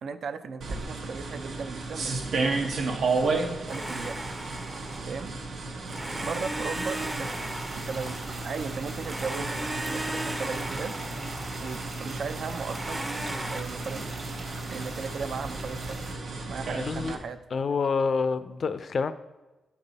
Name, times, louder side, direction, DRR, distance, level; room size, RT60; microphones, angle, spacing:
voice 1, 0.0-3.4 3.7-4.2 5.1-5.3 6.2-7.5 7.9-10.9 11.6-13.0 13.5-14.0 14.7-16.0 16.5-17.4, right 5 dB, 60° right, 11 dB, 0.4 m, -37 dB
sound 1, 0.6-17.1, right 3 dB, 75° right, 0.9 m, -33 dB
Domestic sounds home sounds, 3.7-5.3 5.9-8.6 9.0-12.1 12.7-13.6, right 1 dB, 15° right, 0.6 m, -36 dB
sound 2, 6.7-16.1, right 2 dB, 35° right, 1.2 m, -43 dB
voice 2, 16.7-17.2 17.5-19.1, left 5 dB, 45° left, 12 dB, 0.4 m, -27 dB
7.9 x 5.4 x 4.0 m, 1.1 s
wide cardioid pair, 130°, 0 cm